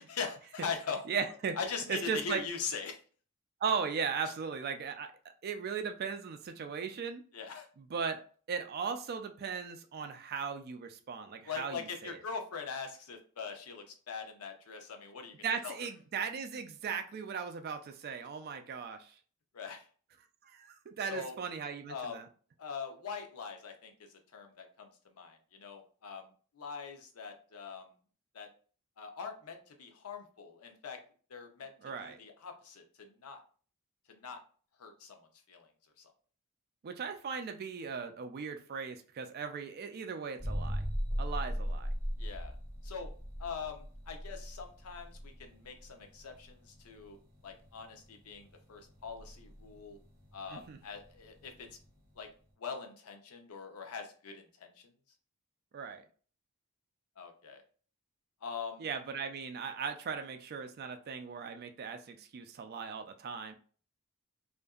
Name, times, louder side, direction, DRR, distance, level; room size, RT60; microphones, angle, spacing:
voice 1, 0.1-1.0 1.6-3.0 7.3-7.7 11.4-15.4 15.6-15.8 19.5-19.9 21.1-21.4 21.9-22.3 22.6-27.9 28.3-28.5 29.0-31.0 31.3-31.7 32.0-33.4 34.1-34.4 34.8-35.2 35.5-35.7 36.0-36.1 42.2-42.6 42.8-43.1 43.4-47.2 47.4-50.0 50.3-51.7 52.2-52.3 52.6-54.9 57.2-57.6 58.4-58.9, left 5 dB, 85° left, 5 dB, 0.5 m, -42 dB
voice 2, 1.1-1.6 1.9-2.4 3.6-5.1 5.4-7.2 7.8-8.2 8.5-12.2 15.4-19.1 20.4-22.3 31.8-32.2 36.8-40.8 41.2-41.9 50.5-50.8 55.7-56.0 58.8-63.5, right 6 dB, 45° right, 7 dB, 0.3 m, -37 dB
sound 1, 40.4-52.1, equal, 10° left, 1.2 m, -39 dB
2.7 x 2.5 x 2.3 m, 0.41 s
head